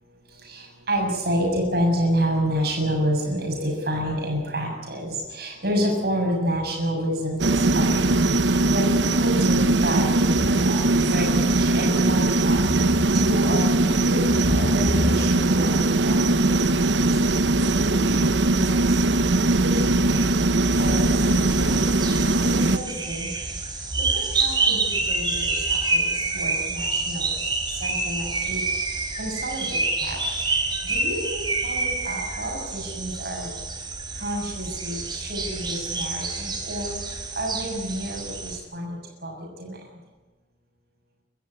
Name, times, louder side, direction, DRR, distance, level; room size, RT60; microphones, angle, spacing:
voice 1, 0.5-8.1 8.7-8.9 9.2-11.3 11.6-12.9 13.2-17.0 17.3-18.6 19.1-19.2 19.6-20.1 20.8-21.7 22.4-23.4 24.0-26.0 26.3-27.4 27.8-28.6 29.2-30.2 30.8-33.5 34.2-36.9 37.4-39.3 39.6-39.8, equal, 60° right, 0 dB, 7.0 m, -28 dB
sound 1, 7.4-22.8, right 2 dB, 90° right, 1.0 m, -20 dB
sound 2, 20.7-38.6, right 3 dB, 25° right, 4.0 m, -28 dB
24.5 x 14.0 x 10.0 m, 1.2 s
head